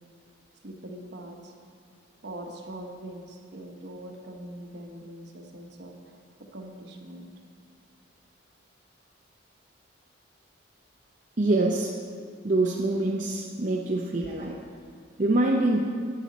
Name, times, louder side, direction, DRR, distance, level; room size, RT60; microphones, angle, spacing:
voice 1, 0.6-1.5 2.2-7.3, right 1 dB, 55° right, 2 dB, 1.1 m, -42 dB
voice 2, 11.4-11.9 12.4-14.6 15.2-15.8, right 2 dB, 40° right, -2 dB, 0.6 m, -25 dB
11.5 x 8.9 x 4.1 m, 2.2 s
head